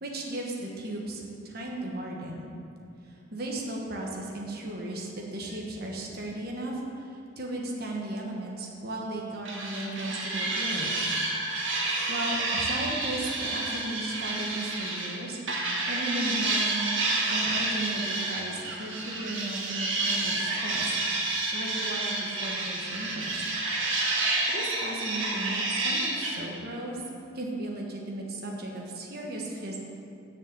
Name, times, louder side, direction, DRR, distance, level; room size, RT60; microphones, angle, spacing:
voice 1, 0.0-2.5 3.3-6.8 7.4-11.1 12.1-15.4 15.9-16.8 17.2-23.4 24.5-27.0 27.3-29.8, right 1 dB, 50° right, -1 dB, 1.3 m, -35 dB
sound 1, 9.4-15.2 15.5-26.3, right 2 dB, 75° right, 1.6 m, -29 dB
7.1 x 7.0 x 7.5 m, 2.7 s
head